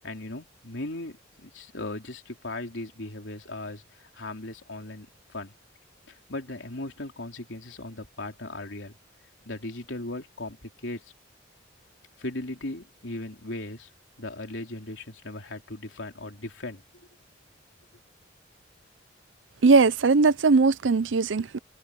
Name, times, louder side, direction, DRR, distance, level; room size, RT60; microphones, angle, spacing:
voice 1, 0.0-5.5 6.1-9.0 9.4-11.1 12.2-13.9 14.2-16.8, left 2 dB, 80° left, 3.5 m, -38 dB
voice 2, 19.6-21.6, right 4 dB, 85° right, 0.6 m, -19 dB
head